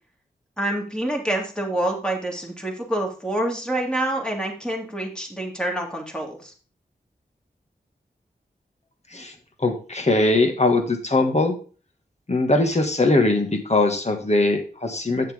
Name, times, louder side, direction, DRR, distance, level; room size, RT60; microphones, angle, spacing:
voice 1, 0.6-6.5, right 1 dB, 5° left, 0 dB, 3.0 m, -27 dB
voice 2, 9.6-11.6 12.3-15.3, left 2 dB, 40° left, 4 dB, 2.0 m, -21 dB
8.7 x 7.0 x 3.7 m, 0.38 s
cardioid pair, 45°, 17 cm